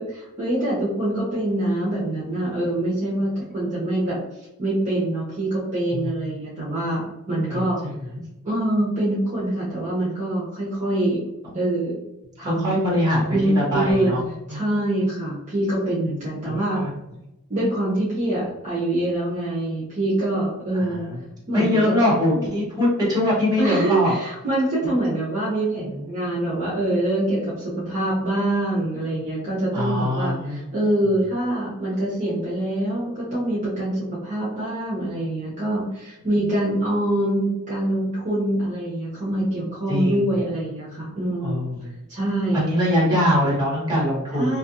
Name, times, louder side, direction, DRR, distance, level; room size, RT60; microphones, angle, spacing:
voice 1, 0.0-4.2 4.6-7.8 8.4-11.2 11.5-12.0 12.4-12.7 13.3-14.1 14.5-16.8 17.5-21.0 21.5-21.9 23.6-41.6 42.1-42.7 44.3-44.6, right 1 dB, 35° right, -7 dB, 0.8 m, -24 dB
voice 2, 7.5-8.0 11.4-11.6 12.4-14.2 14.5-14.7 16.4-17.0 20.8-21.2 21.5-24.1 29.7-30.6 39.9-40.2 41.4-41.9 42.5-44.6, left 1 dB, 20° right, -6 dB, 1.1 m, -23 dB
2.7 x 2.5 x 2.5 m, 0.91 s
head